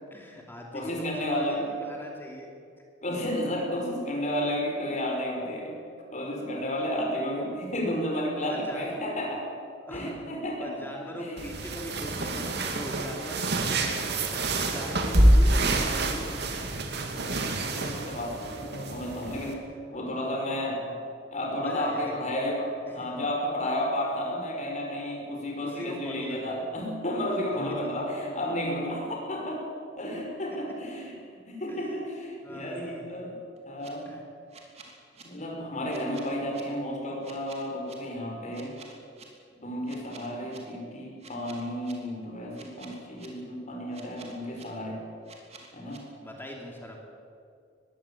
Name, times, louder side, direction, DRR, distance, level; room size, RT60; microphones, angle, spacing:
voice 1, 0.1-2.5 8.4-8.9 9.9-10.2 10.6-13.5 13.9-16.6 20.5-21.0 21.6-22.3 22.9-23.1 25.6-26.7 31.7-31.9 32.4-33.0 34.1-34.2 46.2-47.0, left 1 dB, 10° left, 0 dB, 2.7 m, -41 dB
voice 2, 0.7-1.6 3.0-5.7 6.1-9.5 9.9-10.8 11.2-11.5 12.3-12.4 17.1-19.6 19.9-20.8 21.3-29.6 29.9-31.2 31.4-33.4 33.6-34.1 35.2-38.7 39.6-45.0 45.7-46.0, equal, 40° left, 1 dB, 5.3 m, -32 dB
sound 1, 11.4-19.5, right 1 dB, 60° right, 2.5 m, -26 dB
sound 2, 33.6-33.9 34.5-35.2 35.9-36.6 37.2-38.0 38.5-39.2 39.9-40.6 41.2-41.9 42.5-43.3 43.9-44.6 45.3-46.0, right 5 dB, 35° right, 3.1 m, -49 dB
21.0 x 16.0 x 8.5 m, 2.3 s
head